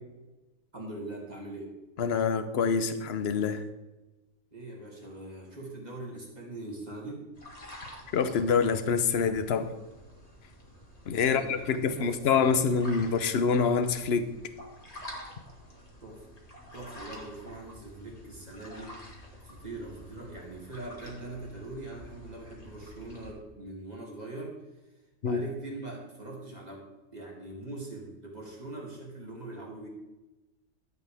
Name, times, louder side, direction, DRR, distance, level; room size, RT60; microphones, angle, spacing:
voice 1, 0.7-1.8 4.5-7.3 11.1-12.5 16.0-16.3 16.7-24.6 25.2-29.9, right 2 dB, 30° right, -3 dB, 2.9 m, -42 dB
voice 2, 2.0-3.6 8.1-9.7 11.1-14.3 25.2-25.4, left 5 dB, 55° left, 11 dB, 1.0 m, -26 dB
sound 1, 7.3-23.3, equal, 25° left, 2.3 m, -49 dB
12.5 x 8.4 x 3.5 m, 1.1 s
omnidirectional pair, 1.5 m